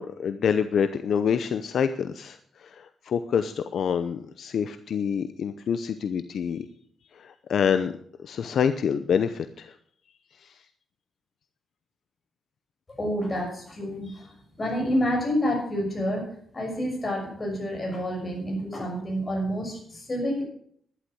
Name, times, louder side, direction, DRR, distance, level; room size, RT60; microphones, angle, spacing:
voice 1, 0.0-6.7 7.2-7.9 8.2-9.7, left 7 dB, 65° left, 11 dB, 0.7 m, -27 dB
voice 2, 13.0-20.4, equal, 25° left, 1 dB, 6.3 m, -29 dB
12.0 x 11.5 x 6.3 m, 0.62 s
cardioid pair, 110°, 0 cm